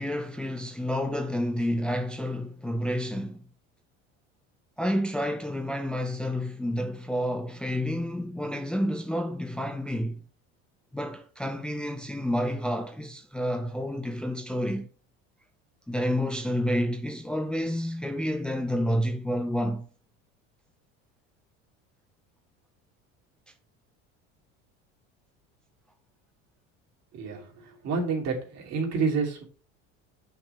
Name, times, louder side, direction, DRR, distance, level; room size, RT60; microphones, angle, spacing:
voice 1, 0.0-3.4 4.8-10.2 10.9-14.9 15.9-19.9, equal, 5° left, 0.6 m, -29 dB
voice 2, 27.1-29.4, right 4 dB, 55° right, 2.7 m, -29 dB
7.0 x 5.8 x 3.3 m
supercardioid pair, 115°, 31 cm